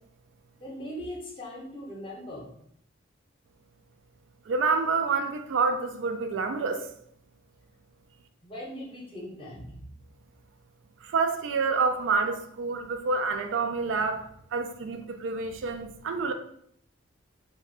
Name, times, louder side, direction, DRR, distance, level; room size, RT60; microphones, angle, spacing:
voice 1, 0.6-2.6 8.4-9.9, equal, 25° left, -3 dB, 0.7 m, -40 dB
voice 2, 4.5-6.9 11.0-16.3, right 4 dB, 70° right, 7 dB, 0.3 m, -28 dB
2.5 x 2.2 x 3.4 m, 0.68 s
head